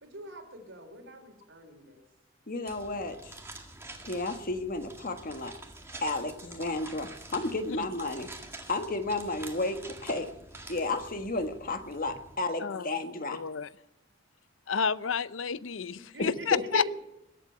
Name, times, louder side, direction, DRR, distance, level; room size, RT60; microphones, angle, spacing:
voice 1, 0.0-2.0 16.0-16.7, right 1 dB, 70° right, 3 dB, 4.1 m, -47 dB
voice 2, 2.5-3.4 4.0-5.5 6.0-8.3 8.7-10.3 10.7-13.4 16.2-16.9, left 2 dB, 45° left, 7 dB, 1.5 m, -32 dB
sound 1, 2.7-12.4, right 2 dB, 15° right, 1.9 m, -47 dB
voice 3, 12.6-12.9 13.3-13.7 14.7-16.8, left 6 dB, 80° left, 17 dB, 0.6 m, -30 dB
22.0 x 8.4 x 7.8 m, 0.87 s
head